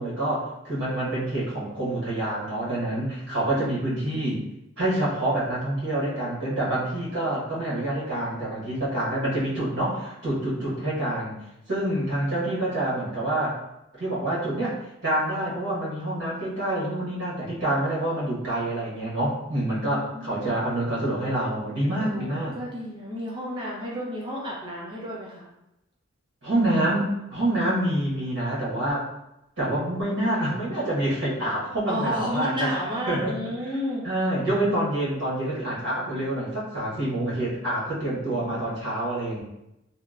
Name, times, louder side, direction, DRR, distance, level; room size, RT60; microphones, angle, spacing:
voice 1, 0.0-4.4 4.8-11.4 11.7-13.6 13.9-14.7 15.0-22.6 26.4-29.1 29.6-32.7 33.1-33.4 34.0-39.4, right 1 dB, 60° right, -7 dB, 1.1 m, -27 dB
voice 2, 3.5-4.3 10.5-10.8 19.7-20.5 22.0-25.5 31.9-34.0, equal, 25° right, -5 dB, 0.5 m, -33 dB
2.8 x 2.1 x 2.3 m, 0.88 s
head